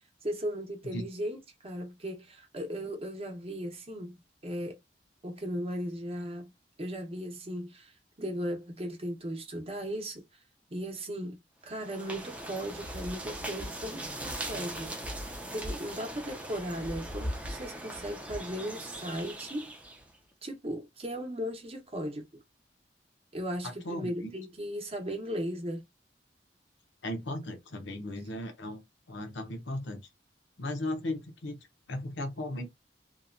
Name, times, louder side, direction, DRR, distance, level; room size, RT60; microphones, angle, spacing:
voice 1, 0.2-4.8 5.2-6.5 6.8-10.2 10.7-11.4 11.6-15.0 15.5-19.7 20.4-22.2 23.3-25.8, equal, 35° right, 0.8 m, -37 dB
sound 1, 11.7-20.1, right 1 dB, 10° right, 0.4 m, -39 dB
voice 2, 23.8-24.3 27.0-28.8 29.1-30.0 30.6-31.6 31.9-32.7, left 1 dB, 90° left, 0.7 m, -36 dB
2.9 x 2.2 x 2.4 m
head